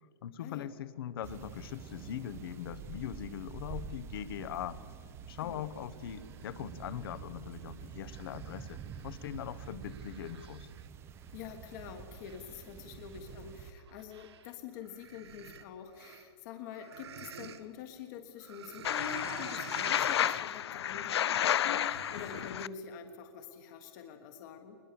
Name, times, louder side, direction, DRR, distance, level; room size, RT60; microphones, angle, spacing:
voice 1, 0.2-4.8 5.3-10.7, left 10 dB, 60° left, 15 dB, 1.1 m, -41 dB
sound 1, 1.2-13.7, right 7 dB, 20° right, 0.8 m, -47 dB
sound 2, 6.1-7.2 7.7-14.5 14.8-17.6 18.4-20.5 21.4-22.6, right 7 dB, 80° right, 1.5 m, -51 dB
voice 2, 11.3-24.8, left 7 dB, 45° left, 6 dB, 1.5 m, -46 dB
sound 3, 18.8-22.7, left 10 dB, 80° left, 0.5 m, -31 dB
21.0 x 20.5 x 6.9 m, 2.2 s
hypercardioid pair, 145°, 14 cm